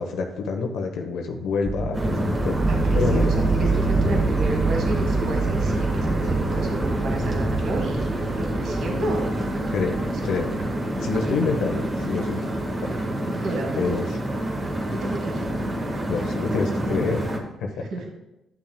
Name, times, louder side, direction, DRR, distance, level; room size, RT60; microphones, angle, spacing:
voice 1, 0.0-3.3 9.7-10.7 11.0-12.4 12.8-12.9 13.8-14.0 16.1-17.2 17.6-17.8, left 4 dB, 85° left, 2 dB, 0.9 m, -27 dB
sound 1, 1.7-11.5, right 3 dB, 10° right, 0.5 m, -27 dB
sound 2, 1.9-17.4, right 1 dB, 35° right, 1.5 m, -27 dB
voice 2, 2.7-9.3 10.1-10.2 11.2-11.4 13.4-14.1 14.9-15.4 15.9-16.0 17.9-18.1, right 1 dB, 70° right, 1 dB, 1.5 m, -31 dB
11.5 x 5.8 x 2.2 m, 0.91 s
cardioid pair, 90°, 0 cm